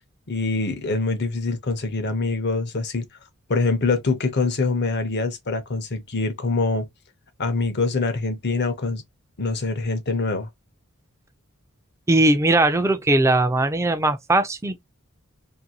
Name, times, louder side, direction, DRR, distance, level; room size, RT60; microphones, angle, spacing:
voice 1, 0.3-3.1 3.5-6.9 7.4-9.0 9.4-10.5, left 3 dB, 50° left, 0.7 m, -24 dB
voice 2, 12.1-14.8, right 2 dB, 15° right, 0.4 m, -19 dB
2.6 x 2.6 x 2.7 m
head